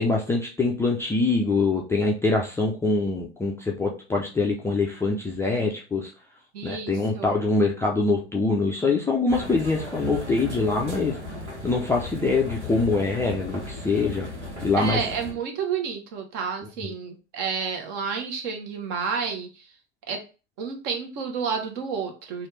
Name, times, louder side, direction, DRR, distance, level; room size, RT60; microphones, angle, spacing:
voice 1, 0.0-6.1 6.6-11.2 11.6-14.3 14.6-15.0 16.8-16.9, left 3 dB, 10° left, -2 dB, 0.4 m, -24 dB
voice 2, 6.5-7.3 14.8-19.7 20.1-20.2 20.6-22.5, right 6 dB, 50° right, 4 dB, 1.0 m, -30 dB
sound 1, 9.3-15.3, left 2 dB, 90° right, 1.2 m, -36 dB
3.2 x 2.4 x 3.1 m, 0.33 s
figure-of-eight pair, 85°, 34 cm